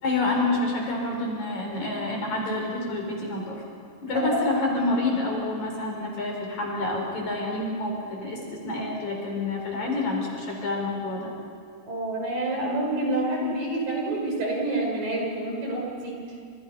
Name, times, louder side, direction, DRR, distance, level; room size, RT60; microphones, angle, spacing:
voice 1, 0.0-3.6 4.0-11.3, left 2 dB, 50° left, -1 dB, 5.8 m, -28 dB
voice 2, 4.1-4.6 11.9-16.2, right 1 dB, 60° right, -1 dB, 7.1 m, -28 dB
29.5 x 28.0 x 5.6 m, 2.3 s
omnidirectional pair, 4.5 m